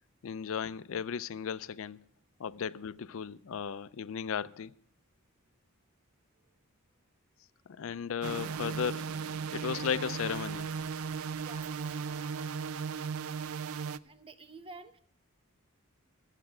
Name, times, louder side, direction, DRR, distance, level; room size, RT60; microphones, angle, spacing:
voice 1, 0.2-2.0 2.4-4.7 7.7-9.1 9.5-10.8, left 7 dB, 65° left, 0.4 m, -35 dB
sound 1, 8.2-14.0, right 6 dB, 70° right, 0.4 m, -36 dB
voice 2, 8.5-9.0 9.4-9.5 11.4-12.4 14.0-15.0, right 3 dB, 25° right, 0.7 m, -52 dB
13.5 x 8.3 x 6.0 m
head